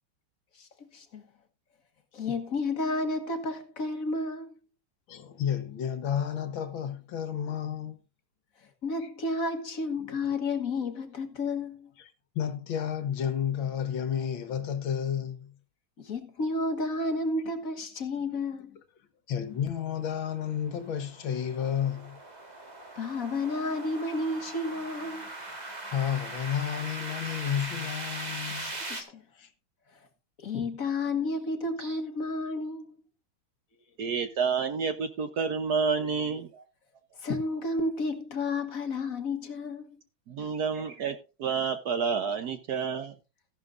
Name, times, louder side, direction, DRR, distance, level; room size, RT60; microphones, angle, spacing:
voice 1, 0.6-1.2 2.1-4.6 8.8-11.9 16.0-18.7 22.9-25.3 28.5-29.2 30.4-32.9 37.2-40.0, left 2 dB, 45° left, 1.6 m, -31 dB
voice 2, 5.1-8.0 9.0-9.1 10.0-10.2 12.0-15.5 18.2-18.3 19.3-22.2 25.9-29.1 29.4-29.5, left 9 dB, 70° left, 1.9 m, -32 dB
sound 1, 19.9-29.0, right 2 dB, 20° right, 1.7 m, -40 dB
voice 3, 34.0-36.6 40.3-43.1, right 5 dB, 60° right, 1.2 m, -29 dB
14.5 x 11.0 x 2.6 m
omnidirectional pair, 2.3 m